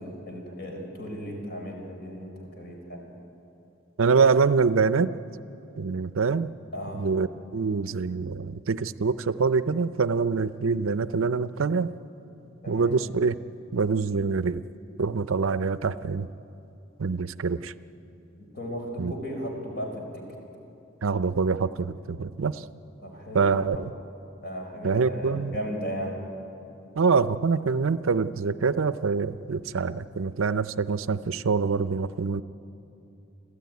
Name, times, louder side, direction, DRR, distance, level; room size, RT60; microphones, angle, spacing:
voice 1, 0.0-3.0 6.7-7.1 12.6-13.0 18.5-20.2 23.0-23.6 24.4-26.1, equal, 50° left, 2 dB, 5.0 m, -35 dB
voice 2, 4.0-5.1 5.8-6.5 6.9-7.3 7.5-11.9 12.7-13.4 13.7-14.6 15.0-16.3 17.0-17.7 19.0-19.1 21.0-22.6 23.3-23.9 24.8-25.6 27.0-32.4, right 5 dB, 75° right, 14 dB, 0.6 m, -25 dB
29.5 x 13.0 x 9.4 m, 2.9 s
head